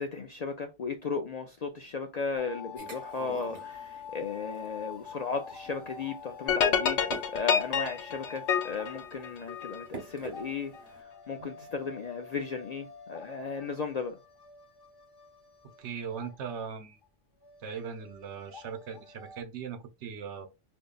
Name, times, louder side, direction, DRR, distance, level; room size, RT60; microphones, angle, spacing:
voice 1, 0.0-7.0 7.3-14.2, left 5 dB, 60° left, 0.4 m, -35 dB
sound 1, 2.4-16.7 17.0-17.1 17.4-19.4, left 7 dB, 25° left, 0.8 m, -47 dB
sound 2, 2.8-11.0, right 3 dB, 35° right, 1.2 m, -48 dB
sound 3, 6.5-9.9, left 7 dB, 90° left, 1.0 m, -28 dB
voice 2, 15.8-17.0 17.6-20.5, right 7 dB, 85° right, 1.0 m, -39 dB
5.1 x 2.7 x 2.2 m
omnidirectional pair, 1.2 m